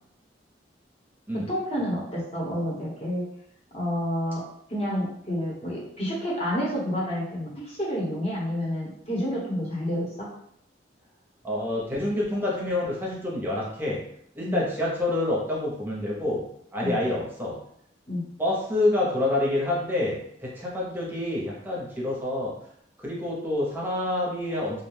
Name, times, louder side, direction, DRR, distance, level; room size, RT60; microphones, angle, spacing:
voice 1, 1.3-3.2 3.7-4.4 4.7-10.3 14.4-14.6 16.8-17.0 18.1-18.2, equal, 35° left, -5 dB, 0.9 m, -29 dB
voice 2, 11.4-14.0 14.3-16.4 16.7-17.5 18.4-22.5 23.0-24.8, left 1 dB, 10° right, -4 dB, 0.7 m, -27 dB
2.4 x 2.2 x 3.1 m, 0.70 s
head